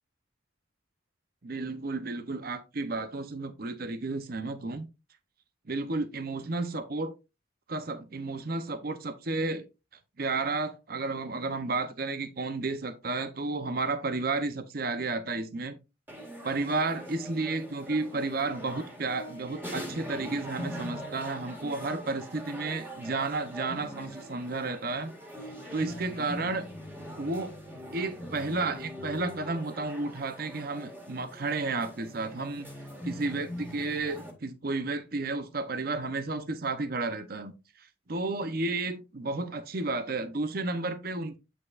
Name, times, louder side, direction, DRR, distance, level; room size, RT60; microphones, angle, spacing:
voice 1, 1.4-4.9 5.7-7.1 7.7-9.7 10.2-15.8 16.4-25.1 25.7-26.7 27.2-27.6 27.9-32.7 33.0-37.5 37.8-41.4, right 3 dB, 50° right, 0.7 m, -32 dB
sound 1, 16.1-34.3, equal, 10° right, 1.9 m, -42 dB
8.6 x 7.2 x 2.5 m
head